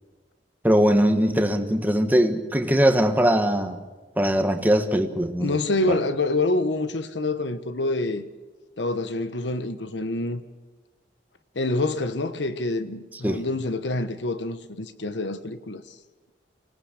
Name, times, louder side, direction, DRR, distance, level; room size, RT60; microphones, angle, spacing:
voice 1, 0.6-3.8 4.2-5.6 5.9-6.0 13.2-13.4, equal, 10° right, 1.4 m, -21 dB
voice 2, 5.4-8.3 8.8-10.4 11.5-15.8, left 2 dB, 85° left, 1.2 m, -26 dB
25.5 x 17.5 x 6.6 m
head